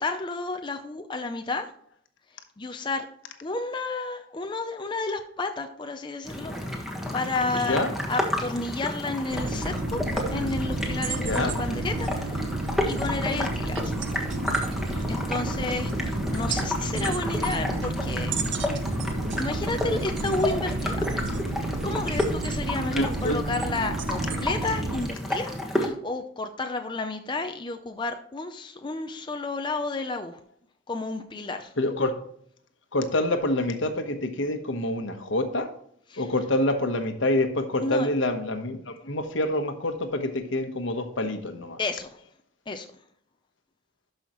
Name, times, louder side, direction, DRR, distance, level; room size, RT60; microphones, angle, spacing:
voice 1, 0.0-1.7 2.6-3.1 3.4-7.8 8.1-10.0 10.3-12.5 12.9-13.9 14.3-14.4 15.1-18.4 18.8-19.0 19.4-21.3 21.8-30.4 30.9-31.7 36.1-36.3 37.8-38.1 41.8-42.2 42.7-42.9, left 3 dB, 25° left, 6 dB, 0.5 m, -31 dB
sound 1, 6.2-25.9, left 1 dB, ahead, 1.4 m, -31 dB
sound 2, 9.3-25.1, right 2 dB, 65° right, 0.8 m, -31 dB
voice 2, 11.2-11.5 22.9-23.4 31.8-32.2 32.9-35.7 36.2-41.8, left 1 dB, 75° left, 7 dB, 1.1 m, -26 dB
12.0 x 5.6 x 3.0 m, 0.65 s
head